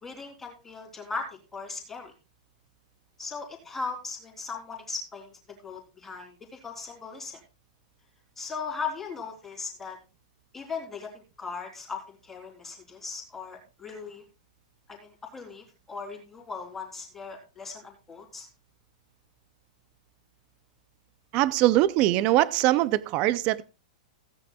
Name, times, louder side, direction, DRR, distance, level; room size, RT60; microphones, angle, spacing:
voice 1, 0.0-2.1 3.2-7.4 8.4-10.0 10.5-14.2 14.9-18.5, left 4 dB, 5° left, 3.4 m, -38 dB
voice 2, 21.3-23.6, right 15 dB, 25° right, 0.4 m, -22 dB
17.0 x 9.7 x 2.3 m
supercardioid pair, 170°, 4 cm